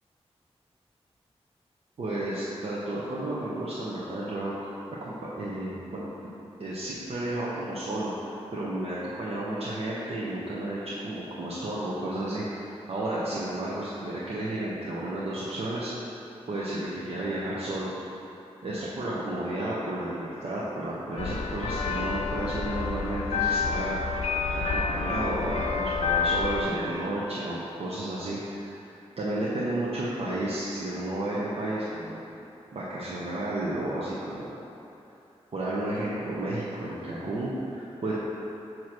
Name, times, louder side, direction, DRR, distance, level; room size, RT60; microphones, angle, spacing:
voice 1, 2.0-4.5 5.0-6.1 6.6-15.9 16.5-17.9 18.6-23.9 24.6-28.8 29.2-32.2 32.7-34.5 35.5-38.1, right 1 dB, 65° right, -8 dB, 1.0 m, -32 dB
sound 1, 21.2-26.6, left 5 dB, 80° left, 0.5 m, -28 dB
7.6 x 3.1 x 5.9 m, 2.8 s
wide cardioid pair, 85°, 11 cm